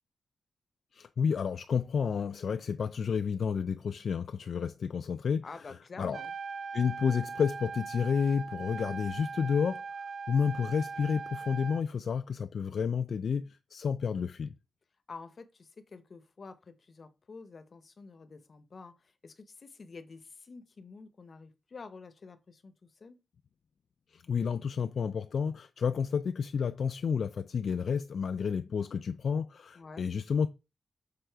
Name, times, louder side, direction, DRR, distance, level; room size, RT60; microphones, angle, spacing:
voice 1, 0.9-6.2 6.7-9.8 10.3-14.5 24.1-30.5, left 6 dB, 65° left, 0.3 m, -30 dB
voice 2, 5.4-6.3 15.1-22.7 23.0-23.2 29.8-30.1, left 4 dB, 45° left, 0.7 m, -49 dB
Trumpet, 6.0-11.8, right 5 dB, 65° right, 0.4 m, -40 dB
6.8 x 3.6 x 4.5 m
wide cardioid pair, 135°, 0 cm